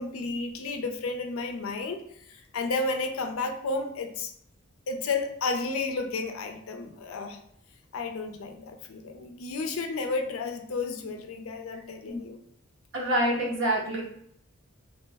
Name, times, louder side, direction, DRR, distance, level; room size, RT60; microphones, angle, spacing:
voice 1, 0.0-2.0 2.3-4.3 4.9-7.4 7.9-12.4, left 3 dB, 80° left, 6 dB, 0.4 m, -32 dB
voice 2, 12.9-14.0, right 1 dB, 60° right, -2 dB, 0.8 m, -26 dB
2.9 x 2.1 x 3.3 m, 0.70 s
head